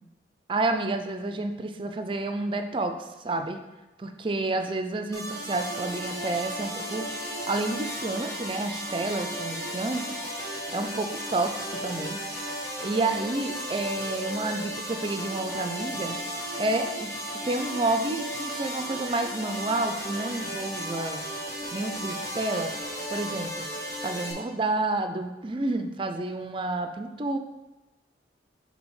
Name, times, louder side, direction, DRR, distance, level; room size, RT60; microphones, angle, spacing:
voice 1, 0.5-3.6 4.0-7.1 7.5-10.0 10.7-12.6 12.8-16.2 16.6-17.2 17.4-21.3 21.7-22.7 23.1-23.7 24.0-27.4, right 2 dB, 30° right, 7 dB, 0.4 m, -30 dB
sound 1, 5.1-24.3, equal, 15° left, 1.4 m, -34 dB
6.2 x 3.4 x 4.7 m, 1.1 s
head